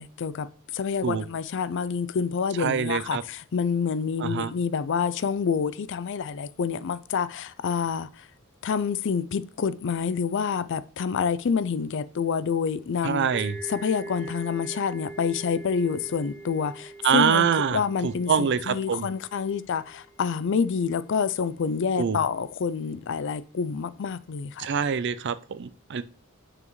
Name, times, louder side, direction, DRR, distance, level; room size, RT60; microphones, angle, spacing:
voice 1, 0.0-8.3 8.6-13.3 13.7-24.7, left 6 dB, 55° left, 0.4 m, -28 dB
voice 2, 2.6-3.2 4.2-4.5 13.0-13.6 17.0-19.1 22.0-22.2 24.6-26.0, right 6 dB, 55° right, 0.5 m, -25 dB
sound 1, 13.3-20.9, right 2 dB, 5° left, 0.6 m, -43 dB
9.4 x 5.7 x 3.1 m
head